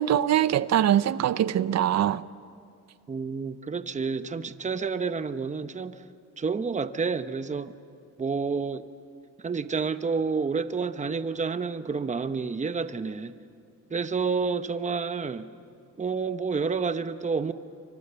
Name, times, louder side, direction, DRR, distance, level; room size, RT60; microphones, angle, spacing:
voice 1, 0.0-2.2, right 11 dB, 60° right, 0.7 m, -23 dB
voice 2, 3.1-6.0 6.4-7.7 8.2-8.8 9.4-13.3 13.9-15.5 16.0-17.5, right 5 dB, 25° right, 1.0 m, -29 dB
29.0 x 24.0 x 6.9 m
cardioid pair, 90°, 30 cm